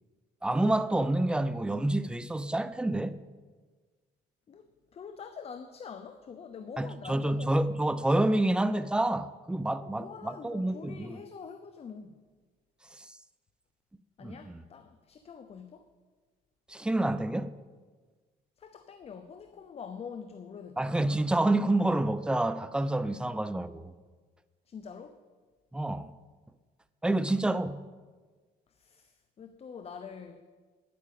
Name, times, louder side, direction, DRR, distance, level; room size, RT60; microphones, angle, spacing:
voice 1, 0.4-3.2 6.8-11.2 13.0-13.1 14.2-14.6 16.7-17.5 20.8-23.8 25.7-26.1 27.0-27.8, right 1 dB, 5° right, 0.5 m, -28 dB
voice 2, 4.5-7.8 9.8-12.2 14.2-15.9 18.6-21.0 24.7-25.2 28.7-30.4, left 6 dB, 35° left, 0.7 m, -45 dB
10.0 x 8.5 x 7.6 m
cardioid pair, 110°, 17 cm